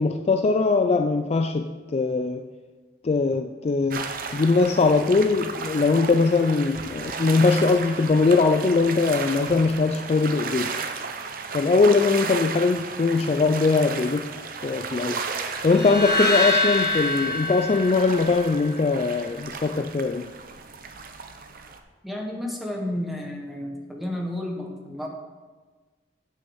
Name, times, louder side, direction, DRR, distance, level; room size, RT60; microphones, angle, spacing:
voice 1, 0.0-2.4 3.0-10.8 11.5-14.3 14.6-15.2 15.6-20.3, left 4 dB, 35° left, 0.3 m, -21 dB
sound 1, 3.9-21.8, right 5 dB, 50° right, 0.7 m, -34 dB
sound 2, 15.7-18.9, left 1 dB, 60° left, 1.4 m, -25 dB
voice 2, 22.0-25.1, left 1 dB, ahead, 1.3 m, -31 dB
8.1 x 6.3 x 6.3 m
head